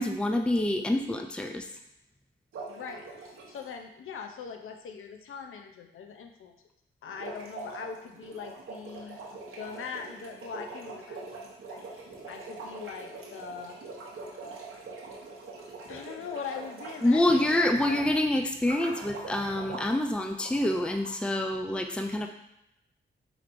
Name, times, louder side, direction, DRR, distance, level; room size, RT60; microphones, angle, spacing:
voice 1, 0.0-1.7 17.0-22.3, left 1 dB, 5° left, 4 dB, 0.4 m, -26 dB
sound 1, 2.5-3.7 7.1-18.2 18.6-21.1, right 3 dB, 80° right, 0.8 m, -43 dB
voice 2, 2.7-6.5 7.0-9.2 9.6-11.2 11.7-13.8 15.9-17.5 17.8-18.0 22.2-22.3, left 6 dB, 75° left, 4 dB, 0.5 m, -41 dB
5.0 x 3.0 x 2.5 m, 0.85 s
cardioid pair, 55°, 21 cm